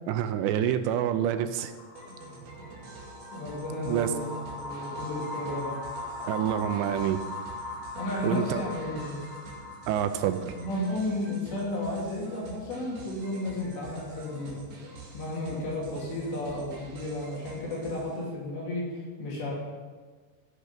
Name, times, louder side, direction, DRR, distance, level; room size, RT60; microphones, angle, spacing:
voice 1, 0.1-1.7 3.8-4.1 6.2-7.2 8.2-8.6 9.9-10.5, right 10 dB, 80° right, 9 dB, 2.8 m, -27 dB
sound 1, 1.6-11.1, left 2 dB, 50° left, 2.3 m, -40 dB
sound 2, 2.0-18.3, right 3 dB, 60° right, 4.3 m, -47 dB
voice 2, 3.3-4.3 4.5-5.8 8.0-9.3 10.6-14.6 15.1-19.5, left 1 dB, 70° left, -5 dB, 4.9 m, -33 dB
14.5 x 7.9 x 5.7 m, 1.5 s
omnidirectional pair, 5.2 m